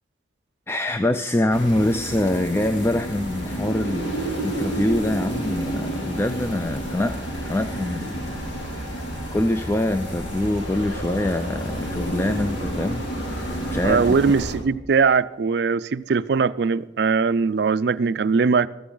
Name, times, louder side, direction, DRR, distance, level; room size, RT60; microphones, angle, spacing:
voice 1, 0.7-4.1 4.4-8.3 8.8-9.0 9.3-14.1, left 1 dB, 15° left, 0.3 m, -24 dB
sound 1, 1.5-14.5, right 1 dB, 80° left, 3.0 m, -30 dB
voice 2, 13.8-18.7, right 5 dB, 60° right, 0.4 m, -20 dB
14.5 x 14.0 x 3.9 m
head